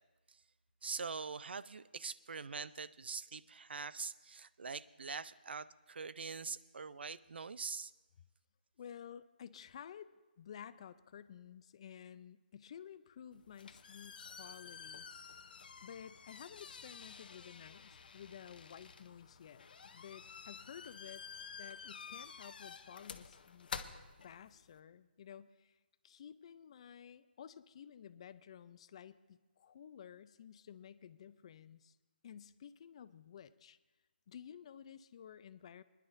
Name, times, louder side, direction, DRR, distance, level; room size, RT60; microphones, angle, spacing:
voice 1, 0.8-7.9, right 5 dB, 75° right, 17 dB, 0.5 m, -44 dB
voice 2, 8.8-15.1 15.8-19.7 19.9-21.2 21.6-23.7 24.2-25.8 26.0-32.0 32.2-33.8 34.3-35.8, left 8 dB, 35° left, 15 dB, 0.4 m, -53 dB
sound 1, 13.3-24.8, left 5 dB, 60° left, 0.7 m, -51 dB
25.0 x 10.5 x 2.6 m, 1.2 s
hypercardioid pair, 165°, 6 cm